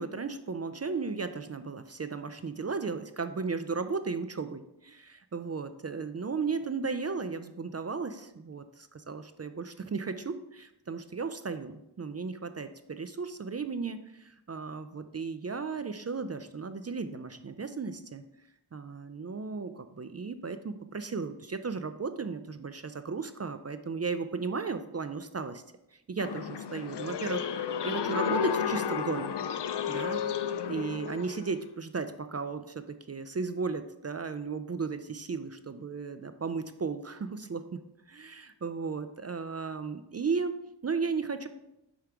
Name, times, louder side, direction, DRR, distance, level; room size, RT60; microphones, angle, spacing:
voice 1, 0.0-18.2 18.7-25.6 26.1-29.3 29.9-30.2 30.7-37.8 38.1-41.5, right 4 dB, 40° right, 10 dB, 0.4 m, -35 dB
sound 1, 26.2-31.5, left 8 dB, 75° left, 0.5 m, -32 dB
5.1 x 4.6 x 5.8 m, 0.88 s
wide cardioid pair, 60°, 41 cm